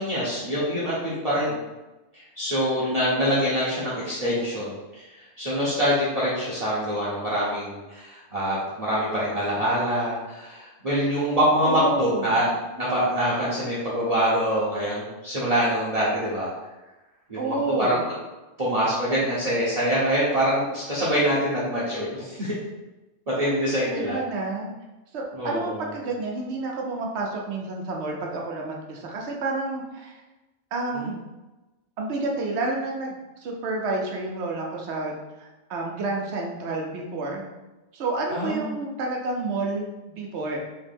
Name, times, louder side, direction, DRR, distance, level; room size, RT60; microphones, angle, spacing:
voice 1, 0.0-1.6 2.1-12.5 12.7-16.5 17.3-18.0 18.6-22.5 23.3-24.2 25.3-25.8 30.9-31.1 38.3-38.8, equal, 35° right, -8 dB, 0.9 m, -25 dB
voice 2, 11.6-12.3 17.4-18.0 23.8-24.7 25.1-30.2 30.7-31.2 32.0-37.4 37.9-40.6, right 3 dB, 70° right, 0 dB, 1.0 m, -30 dB
3.3 x 3.1 x 3.4 m, 1.1 s
omnidirectional pair, 1.2 m